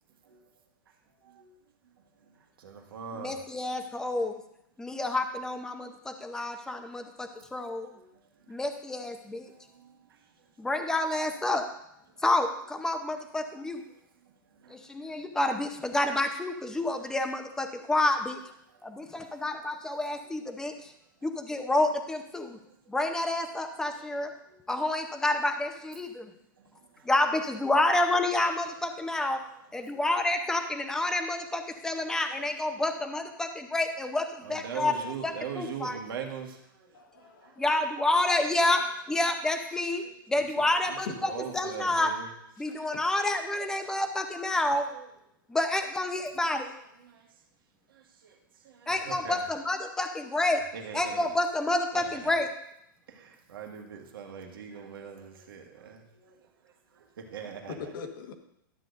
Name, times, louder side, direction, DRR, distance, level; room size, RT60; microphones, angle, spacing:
voice 1, 2.6-3.4 7.9-8.1 13.7-13.8 14.6-14.7 17.1-17.2 20.2-20.4 24.5-24.6 26.0-26.1 29.8-30.0 31.0-31.1 31.8-32.2 34.4-36.9 37.4-37.5 40.0-40.1 40.3-42.3 42.8-43.3 44.9-45.1 47.0-47.2 48.2-48.3 48.6-49.5 50.6-51.3 51.9-52.3 53.1-56.3 57.3-57.9, right 7 dB, 85° right, 2 dB, 1.5 m, -41 dB
voice 2, 3.1-4.3 4.8-7.9 8.5-9.5 10.6-11.6 12.2-13.8 14.7-18.4 18.8-20.7 21.2-22.6 22.9-24.3 24.7-26.3 27.0-29.4 29.7-34.9 35.2-36.0 37.6-38.8 39.1-42.1 42.6-44.8 45.5-46.7 48.9-50.6 50.9-52.5, left 2 dB, 5° left, 6 dB, 0.7 m, -29 dB
voice 3, 36.9-37.6 39.7-39.8 41.2-41.3 41.8-42.3 42.7-43.0 57.7-58.3, left 6 dB, 70° left, 5 dB, 1.4 m, -44 dB
12.5 x 8.1 x 2.6 m, 0.76 s
hypercardioid pair, 140°, 12 cm